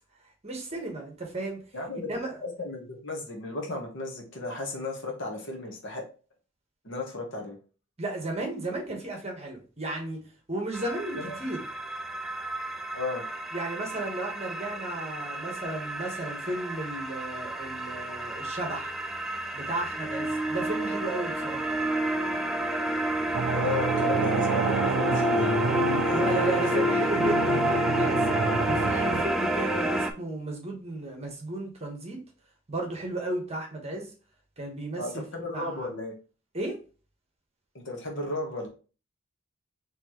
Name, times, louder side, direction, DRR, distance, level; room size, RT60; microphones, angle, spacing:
voice 1, 0.4-1.6 1.9-2.4 8.0-10.2 10.5-11.6 13.5-18.9 19.5-21.7 26.1-28.3 28.6-32.2 32.7-34.1 34.6-35.9 36.5-36.8, right 2 dB, 30° right, 1.1 m, -34 dB
voice 2, 1.7-2.1 2.4-6.0 6.8-7.6 11.2-11.4 12.9-13.2 23.5-25.8 26.0-27.1 35.0-36.1 37.7-38.7, left 2 dB, 55° left, 1.1 m, -34 dB
sound 1, 10.7-30.1, equal, ahead, 0.3 m, -29 dB
sound 2, 23.3-29.2, right 5 dB, 75° right, 0.4 m, -29 dB
4.5 x 3.2 x 3.0 m
head